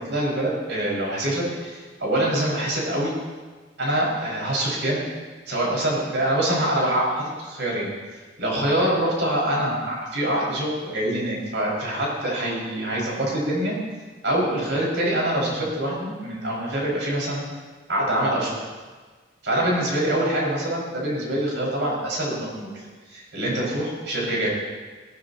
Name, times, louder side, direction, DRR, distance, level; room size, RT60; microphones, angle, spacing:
voice 1, 0.0-3.2 3.8-5.0 5.5-7.9 8.4-13.8 14.2-17.4 17.9-18.6 19.4-22.7 23.1-24.5, right 1 dB, 85° right, -4 dB, 5.6 m, -25 dB
18.5 x 16.5 x 3.0 m, 1.4 s
head